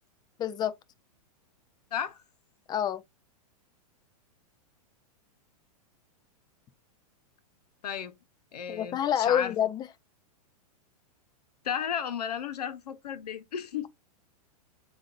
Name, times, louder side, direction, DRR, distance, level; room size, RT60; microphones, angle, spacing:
voice 1, 0.4-0.7 2.7-3.0 8.7-9.9, left 9 dB, 20° left, 0.5 m, -27 dB
voice 2, 1.9-2.2 7.8-8.2 8.5-9.5 11.6-13.9, left 8 dB, 80° left, 0.9 m, -33 dB
7.5 x 2.6 x 2.5 m
hypercardioid pair, 125°, 20 cm